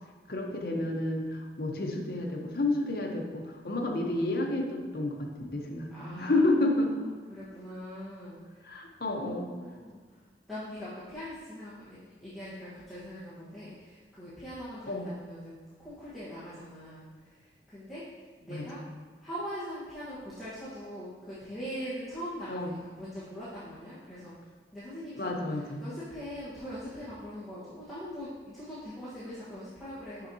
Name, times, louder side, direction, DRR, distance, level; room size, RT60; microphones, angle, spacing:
voice 1, 0.3-6.9 8.6-9.5 14.9-15.1 18.5-18.6 22.5-22.8 25.2-25.8, left 2 dB, 55° left, 1 dB, 0.8 m, -30 dB
voice 2, 5.9-8.7 9.1-10.0 10.5-18.0 18.4-18.8 19.2-24.3 24.7-25.3 25.8-30.3, equal, ahead, -14 dB, 1.3 m, -42 dB
6.4 x 6.2 x 2.8 m, 1.5 s
head